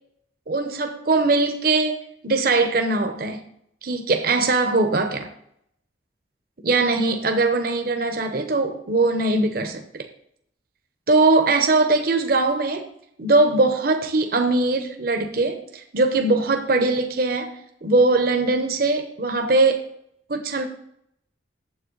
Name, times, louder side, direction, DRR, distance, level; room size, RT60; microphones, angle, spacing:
voice 1, 0.5-2.0 2.2-3.4 3.8-5.3 6.6-10.1 11.1-12.9 13.2-19.9 20.3-20.6, right 3 dB, 55° right, 6 dB, 0.9 m, -21 dB
9.6 x 7.3 x 3.9 m, 0.72 s
head